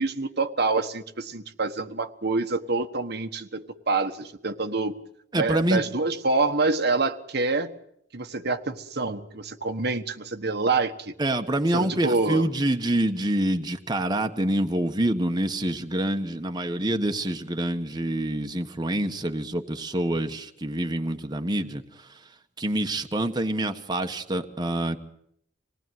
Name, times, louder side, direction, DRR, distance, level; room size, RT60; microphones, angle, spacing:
voice 1, 0.0-4.9 5.3-7.7 8.1-11.1 11.7-12.4, right 3 dB, 60° right, 7 dB, 1.4 m, -26 dB
voice 2, 5.3-5.8 11.2-22.2 22.6-25.0, right 1 dB, 25° right, 5 dB, 1.4 m, -26 dB
26.5 x 19.0 x 9.4 m, 0.72 s
head